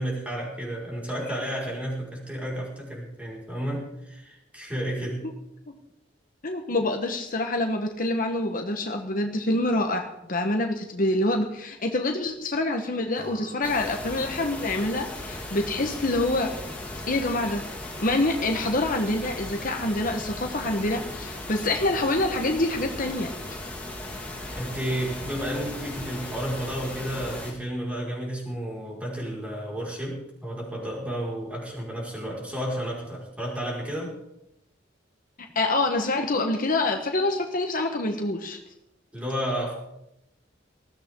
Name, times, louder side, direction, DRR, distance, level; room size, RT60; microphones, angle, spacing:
voice 1, 0.0-5.2 24.5-34.2 39.1-39.7, equal, 5° right, -3 dB, 5.4 m, -32 dB
voice 2, 6.4-16.5 17.1-17.6 18.0-23.3 35.5-38.6, left 2 dB, 45° left, 4 dB, 1.3 m, -26 dB
Acoustic guitar / Strum, 13.2-16.8, right 1 dB, 80° right, 3.4 m, -49 dB
sound 1, 13.6-27.5, left 1 dB, 10° left, 3.7 m, -37 dB
19.5 x 14.5 x 3.8 m, 0.84 s
head